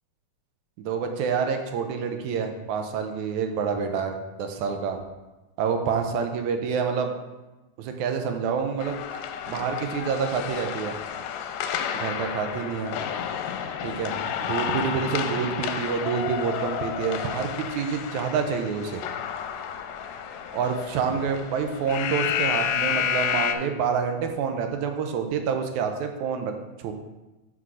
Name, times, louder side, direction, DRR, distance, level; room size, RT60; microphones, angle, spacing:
voice 1, 0.8-5.0 5.6-7.1 7.8-8.9 9.5-11.0 11.9-13.0 13.8-19.0 20.5-26.5 26.8-26.9, right 6 dB, 90° right, 5 dB, 2.1 m, -27 dB
sound 1, 8.8-23.5, left 9 dB, 80° left, 1.8 m, -31 dB
5.9 x 4.8 x 6.1 m, 1.1 s
omnidirectional pair, 3.3 m